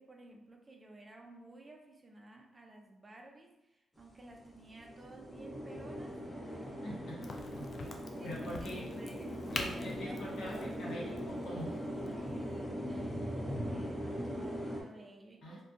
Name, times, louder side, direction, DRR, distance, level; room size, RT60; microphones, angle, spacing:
voice 1, 0.0-6.2 6.5-6.8 7.9-11.2 12.1-15.6, right 2 dB, 30° right, 2 dB, 0.4 m, -55 dB
sound 1, 4.0-4.1 4.3-14.8, equal, 5° left, 0.8 m, -40 dB
voice 2, 6.8-7.9 8.2-8.9 9.5-11.8 15.4-15.6, equal, 75° left, -4 dB, 0.9 m, -44 dB
Crack, 7.2-12.7, left 3 dB, 55° left, 0.3 m, -45 dB
2.6 x 2.2 x 2.4 m, 0.95 s
cardioid pair, 80°, 0 cm